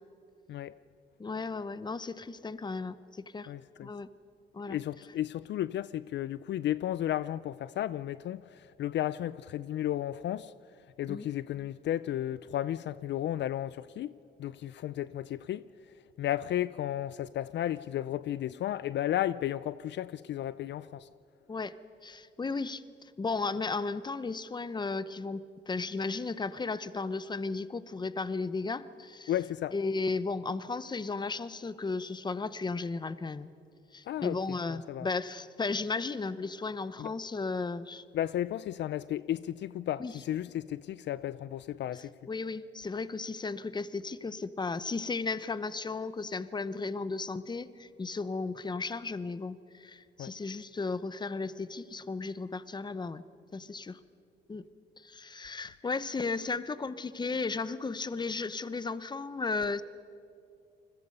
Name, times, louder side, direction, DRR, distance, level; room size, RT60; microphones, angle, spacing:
voice 1, 1.2-3.5 3.8-4.1 4.5-4.8 11.1-11.3 21.5-21.7 22.0-29.3 29.7-33.5 33.9-38.0 40.0-40.1 42.3-53.2 53.5-54.0 54.5-54.6 55.0-59.8, left 4 dB, 20° left, 0.8 m, -35 dB
voice 2, 3.5-3.9 4.7-10.5 11.0-15.7 16.2-21.1 29.3-29.7 34.1-34.4 34.7-35.1 37.0-37.1 38.1-42.1 50.2-50.3, left 12 dB, 65° left, 0.5 m, -33 dB
29.0 x 21.0 x 5.5 m
cardioid pair, 90°, 20 cm